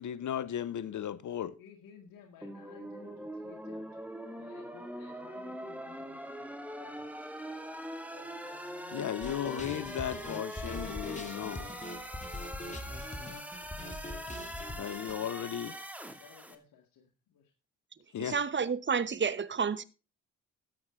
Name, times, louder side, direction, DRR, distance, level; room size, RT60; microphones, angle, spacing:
voice 1, 0.0-1.6 8.9-11.7 14.8-15.7 18.1-18.4, left 10 dB, 50° left, 0.8 m, -35 dB
voice 2, 1.6-4.0 4.4-7.2 8.1-9.0 14.1-15.8 16.2-17.5, left 7 dB, 70° left, 1.9 m, -57 dB
sound 1, 2.4-16.6, equal, 5° right, 2.5 m, -43 dB
sound 2, 9.2-15.1, left 2 dB, 20° left, 2.6 m, -42 dB
voice 3, 18.2-19.8, right 6 dB, 30° right, 1.1 m, -30 dB
13.5 x 9.0 x 3.7 m
hypercardioid pair, 50°, 38 cm